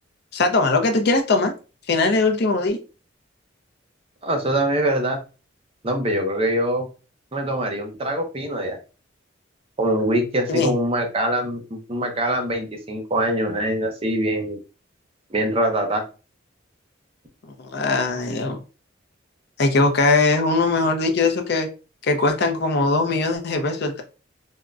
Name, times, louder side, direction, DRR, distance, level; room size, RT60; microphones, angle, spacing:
voice 1, 0.3-1.5 1.9-2.8 10.5-10.7 17.6-18.6 19.6-21.7 22.0-24.0, left 3 dB, 55° left, 6 dB, 0.5 m, -20 dB
voice 2, 4.2-5.2 5.8-6.9 7.3-8.8 9.8-14.6 15.3-16.0, right 1 dB, 30° right, 3 dB, 0.6 m, -23 dB
3.5 x 2.1 x 2.4 m, 0.33 s
head